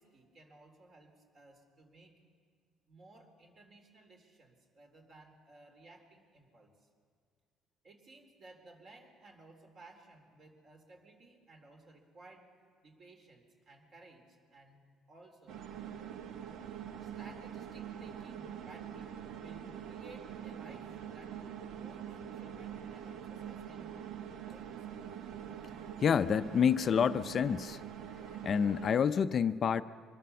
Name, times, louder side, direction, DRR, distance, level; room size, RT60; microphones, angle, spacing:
voice 1, 0.0-2.2 2.9-6.9 7.8-12.5 12.8-15.6 17.0-19.1 19.4-24.1 24.5-25.0, right 2 dB, 45° right, 3 dB, 3.8 m, -58 dB
sound 1, 15.5-28.9, right 9 dB, 65° right, 1.0 m, -44 dB
voice 2, 26.0-27.8 28.4-29.8, left 7 dB, 40° left, 11 dB, 0.5 m, -28 dB
24.5 x 20.5 x 7.0 m, 2.1 s
cardioid pair, 125°, 0 cm